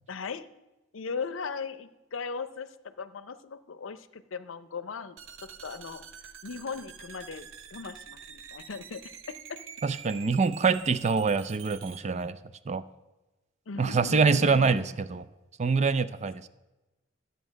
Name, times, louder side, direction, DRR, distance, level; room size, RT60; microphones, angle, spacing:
voice 1, 0.1-0.5 0.9-6.0 6.4-9.0 9.3-9.6 13.7-15.0, left 5 dB, 90° left, 13 dB, 0.6 m, -38 dB
sound 1, 5.2-12.0, right 7 dB, 85° right, 0.8 m, -47 dB
voice 2, 9.8-12.4 12.7-12.8 13.8-15.3 15.6-16.5, right 4 dB, 35° right, 14 dB, 0.4 m, -25 dB
13.0 x 7.8 x 6.3 m, 1.1 s
head